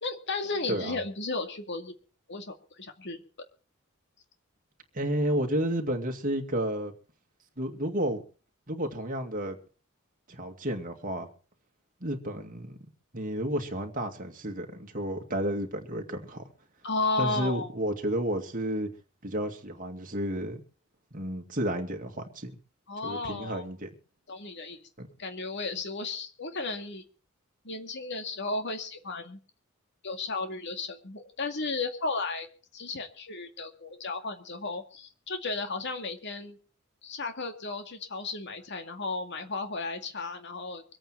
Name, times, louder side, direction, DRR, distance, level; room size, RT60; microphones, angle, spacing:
voice 1, 0.0-1.9 2.3-3.2 16.8-17.7 22.9-23.6 24.3-24.9 25.2-27.0 27.6-29.4 30.0-32.5 32.7-36.6 37.0-40.8, left 3 dB, 60° left, 2.2 m, -34 dB
voice 2, 4.9-6.9 7.6-8.2 8.7-9.6 10.3-11.3 12.0-12.8 13.1-16.4 17.2-18.9 19.2-20.6 21.1-22.6 23.0-23.9 25.0-25.1, right 1 dB, 40° right, 2.4 m, -31 dB
24.5 x 8.9 x 4.6 m
head